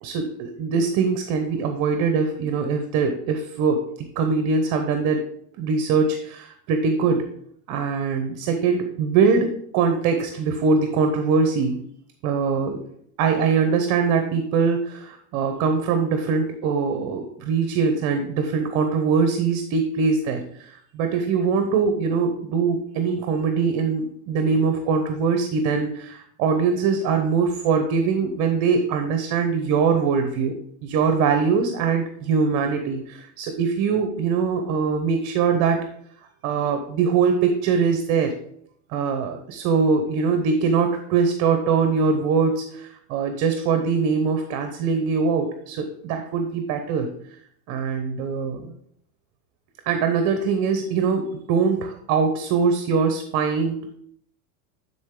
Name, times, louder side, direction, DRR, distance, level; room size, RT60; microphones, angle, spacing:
voice 1, 0.0-5.2 5.6-7.2 7.7-11.8 12.2-12.8 13.2-35.8 36.4-38.3 38.9-47.1 47.7-48.6 49.9-53.9, right 5 dB, 45° right, 6 dB, 0.9 m, -22 dB
9.8 x 4.1 x 3.7 m, 0.67 s
supercardioid pair, 155°, 41 cm